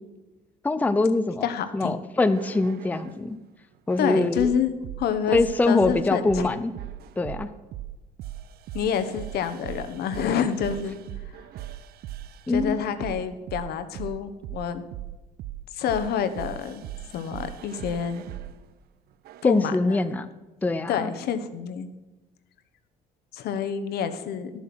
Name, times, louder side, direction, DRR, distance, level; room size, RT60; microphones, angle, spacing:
voice 1, 0.6-1.5 1.7-3.4 3.9-4.5 5.3-6.7 7.2-7.5 12.5-12.8 19.4-20.3 20.6-21.1, left 2 dB, 10° left, 11 dB, 0.5 m, -23 dB
voice 2, 1.4-2.0 4.0-4.7 5.0-5.4 5.7-6.5 8.7-11.0 12.5-14.8 15.7-16.8 17.1-18.2 19.4-19.9 20.9-21.9 23.3-24.5, left 8 dB, 70° left, 9 dB, 0.9 m, -28 dB
sound 1, 2.2-3.2 3.9-18.6 19.2-19.6, right 13 dB, 65° right, 0.5 m, -39 dB
12.0 x 7.2 x 6.0 m, 1.1 s
cardioid pair, 110°, 17 cm